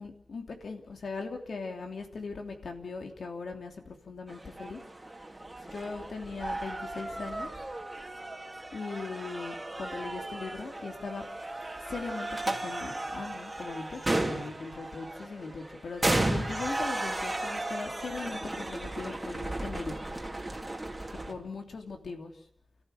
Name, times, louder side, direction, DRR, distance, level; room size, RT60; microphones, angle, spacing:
voice 1, 0.0-4.8 5.7-7.6 8.7-11.2 11.9-20.1 21.1-22.3, left 4 dB, 90° left, 4 dB, 3.0 m, -39 dB
sound 1, 4.3-21.3, right 2 dB, 20° right, 2.9 m, -35 dB
30.0 x 14.0 x 6.8 m, 0.64 s
wide cardioid pair, 95°, 0 cm